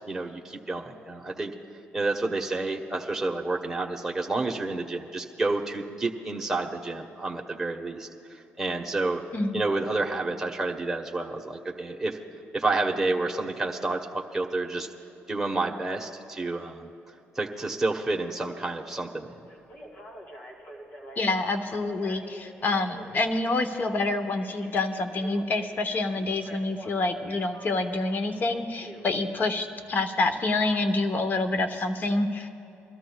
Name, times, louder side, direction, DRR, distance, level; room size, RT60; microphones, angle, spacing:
voice 1, 0.1-1.5 1.9-9.2 9.5-12.2 12.5-14.9 15.3-16.9 17.3-19.3, right 2 dB, 10° right, 0 dB, 1.2 m, -29 dB
voice 2, 9.3-9.6 21.2-32.5, left 2 dB, 45° left, 8 dB, 1.0 m, -27 dB
Telephone, 19.5-29.1 30.6-30.8, equal, 60° left, 2.6 m, -45 dB
25.0 x 13.0 x 2.3 m, 2.7 s
cardioid pair, 80°, 4 cm